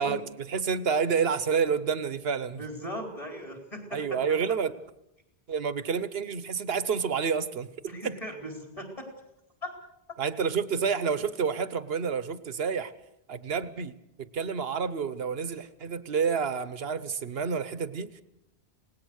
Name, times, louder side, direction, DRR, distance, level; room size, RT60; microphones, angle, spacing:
voice 1, 0.0-2.6 3.9-4.7 5.5-7.7 10.2-12.9 13.3-13.9 14.2-18.2, right 6 dB, 70° right, 14 dB, 1.2 m, -29 dB
voice 2, 2.5-4.2 7.9-9.1 9.6-9.8, equal, 30° left, 3 dB, 4.6 m, -39 dB
27.0 x 19.0 x 6.5 m, 0.82 s
omnidirectional pair, 1.1 m